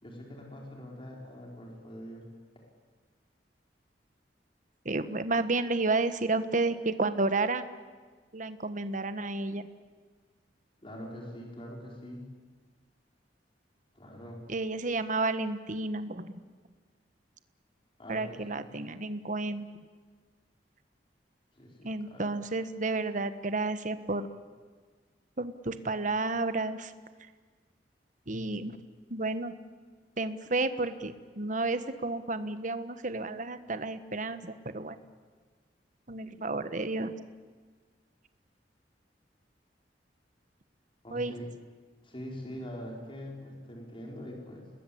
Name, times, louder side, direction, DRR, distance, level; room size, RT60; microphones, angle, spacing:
voice 1, 0.0-2.3 10.8-12.3 13.9-14.4 18.0-18.6 21.5-22.4 41.0-41.4 42.0-44.7, equal, 30° left, 0 dB, 4.7 m, -43 dB
voice 2, 4.8-7.7 8.3-9.7 14.5-16.3 18.1-19.7 21.8-24.3 25.4-26.9 28.3-28.8 29.1-29.5 30.2-35.0 36.1-37.2 41.1-41.3, right 3 dB, 45° right, 11 dB, 1.4 m, -31 dB
30.0 x 20.5 x 8.7 m, 1.5 s
head